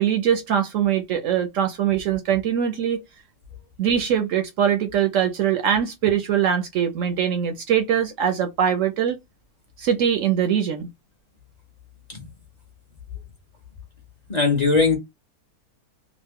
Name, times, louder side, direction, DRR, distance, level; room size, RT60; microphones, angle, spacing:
voice 1, 0.0-3.0 3.8-9.2 9.8-10.9, right 9 dB, 65° right, 0.9 m, -22 dB
voice 2, 14.3-15.0, left 4 dB, 35° left, 0.8 m, -19 dB
3.0 x 2.4 x 3.6 m
omnidirectional pair, 1.6 m